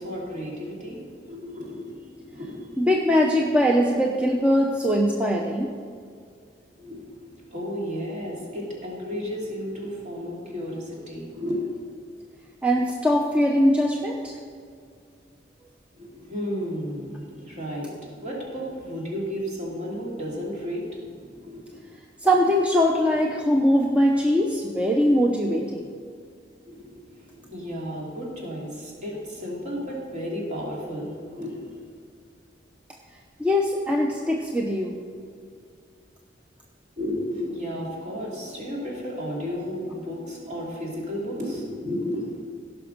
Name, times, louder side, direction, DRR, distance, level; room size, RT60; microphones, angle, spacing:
voice 1, 0.0-2.8 6.8-11.9 15.9-21.8 26.7-31.8 37.0-42.4, equal, 40° right, -3 dB, 2.9 m, -33 dB
voice 2, 2.8-5.7 12.6-14.4 22.2-25.9 33.4-35.0, equal, 5° right, 0 dB, 0.7 m, -21 dB
16.5 x 6.0 x 5.3 m, 2.2 s
head